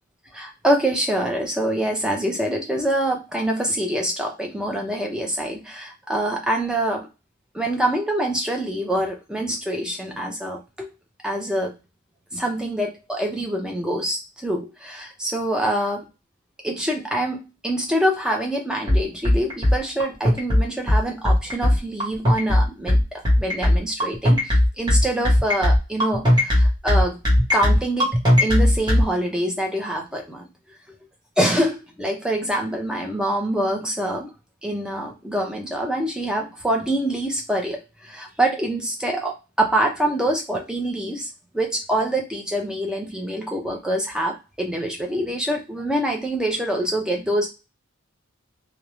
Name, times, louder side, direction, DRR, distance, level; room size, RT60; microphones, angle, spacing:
voice 1, 0.3-7.1 7.5-10.9 11.2-11.7 12.3-16.0 16.6-27.2 27.5-30.5 31.4-34.3 34.6-41.3 41.5-47.5, right 1 dB, 5° right, 1 dB, 0.5 m, -25 dB
sound 1, 18.9-29.0, left 1 dB, 20° right, 0.9 m, -17 dB
2.4 x 2.0 x 3.0 m, 0.29 s
head